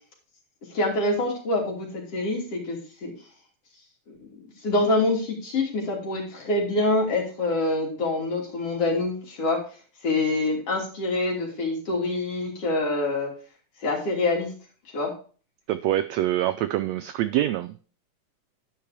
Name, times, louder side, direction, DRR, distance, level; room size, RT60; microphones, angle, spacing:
voice 1, 0.7-3.1 4.1-9.6 10.0-13.3 13.8-14.5 14.9-15.1, left 2 dB, 50° left, -2 dB, 3.8 m, -26 dB
voice 2, 15.7-17.8, right 13 dB, 85° right, 10 dB, 1.5 m, -25 dB
10.5 x 5.6 x 5.0 m, 0.40 s
omnidirectional pair, 3.6 m